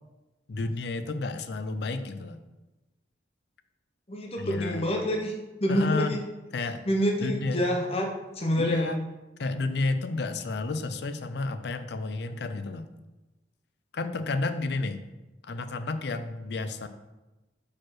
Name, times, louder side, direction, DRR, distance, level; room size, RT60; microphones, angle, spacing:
voice 1, 0.5-2.4 4.4-4.8 5.7-6.2 6.5-6.8 7.2-7.6 8.6-9.0 9.4-12.9 13.9-15.0 15.4-16.9, left 3 dB, 65° left, 10 dB, 0.5 m, -31 dB
voice 2, 4.1-5.3 5.6-6.2 6.9-8.1 8.4-9.0, equal, 35° left, 1 dB, 0.8 m, -27 dB
5.0 x 4.2 x 5.9 m, 1.1 s
head